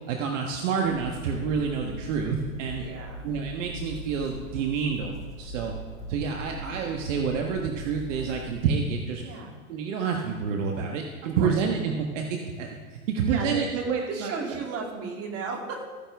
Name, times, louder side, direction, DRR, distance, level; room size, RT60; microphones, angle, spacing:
voice 1, 0.1-2.8 3.2-5.7 6.1-9.2 9.7-14.6, right 6 dB, 60° right, 2 dB, 1.4 m, -28 dB
sound 1, 0.8-8.6, right 2 dB, 10° left, 2.1 m, -40 dB
voice 2, 2.7-3.3 6.5-6.6 9.2-9.6 11.4-11.6 13.2-15.8, right 4 dB, 35° right, 1 dB, 2.4 m, -35 dB
15.0 x 9.9 x 3.5 m, 1.4 s
hypercardioid pair, 120°, 43 cm